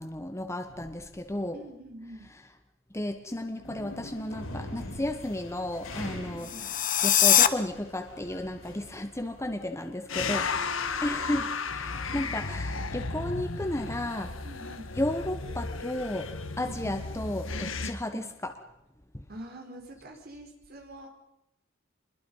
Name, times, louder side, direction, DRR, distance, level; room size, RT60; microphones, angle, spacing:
voice 1, 0.0-1.6 2.9-10.5 11.0-11.5 11.7-14.3 15.0-18.5 19.1-19.2, left 1 dB, 15° left, 6 dB, 1.1 m, -33 dB
voice 2, 1.5-2.3 6.3-6.7 10.5-11.5 11.9-12.3 14.4-15.0 16.6-17.0 18.1-18.3 19.3-21.1, right 1 dB, 50° right, 2 dB, 4.5 m, -45 dB
sound 1, 3.6-11.2, left 1 dB, 90° left, 7.4 m, -44 dB
sound 2, 6.4-7.5, left 11 dB, 40° left, 1.0 m, -21 dB
sound 3, 10.1-17.9, left 4 dB, 70° left, 1.4 m, -34 dB
26.0 x 21.5 x 5.5 m, 0.83 s
head